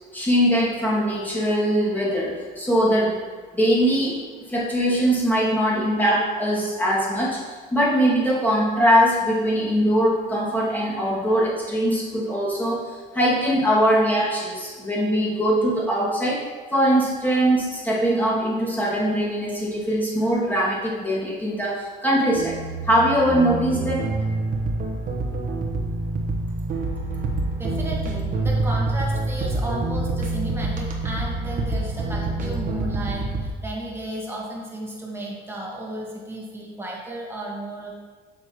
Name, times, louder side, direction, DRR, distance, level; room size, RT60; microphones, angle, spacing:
voice 1, 0.1-3.2 3.5-4.2 4.5-16.4 16.7-22.6 22.8-24.1, equal, 10° left, -6 dB, 2.2 m, -21 dB
sound 1, 22.4-33.5, right 2 dB, 50° right, 1.1 m, -26 dB
voice 2, 27.6-37.9, right 1 dB, 15° right, -3 dB, 1.8 m, -34 dB
7.6 x 6.9 x 3.0 m, 1.5 s
cardioid pair, 110°, 17 cm